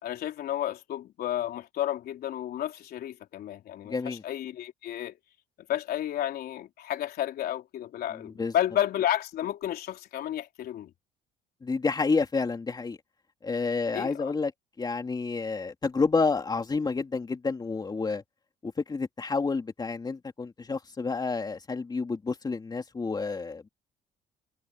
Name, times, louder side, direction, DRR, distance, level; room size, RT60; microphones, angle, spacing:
voice 1, 0.0-5.2 5.7-10.9 13.9-14.3, left 12 dB, 65° left, 3.7 m, -32 dB
voice 2, 3.9-4.2 8.1-8.5 11.6-13.0 13.4-14.5 14.8-18.2 18.6-23.7, left 4 dB, 25° left, 3.1 m, -29 dB
cardioid pair, 110°, 17 cm